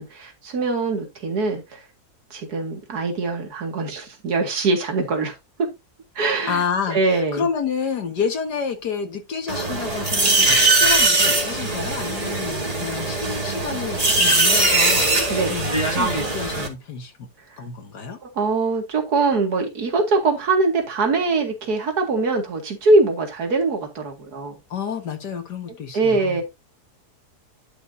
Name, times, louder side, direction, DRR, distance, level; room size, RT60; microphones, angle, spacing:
voice 1, 0.0-1.8 2.3-5.7 6.2-6.6 6.9-7.5 15.3-15.5 18.4-24.5 25.9-26.4, right 3 dB, 75° right, 2.6 m, -22 dB
voice 2, 6.5-17.1 17.6-18.2 24.7-26.4, left 6 dB, 90° left, 2.2 m, -29 dB
sound 1, 9.5-16.7, right 2 dB, 25° right, 2.1 m, -20 dB
11.0 x 6.4 x 2.7 m
omnidirectional pair, 1.7 m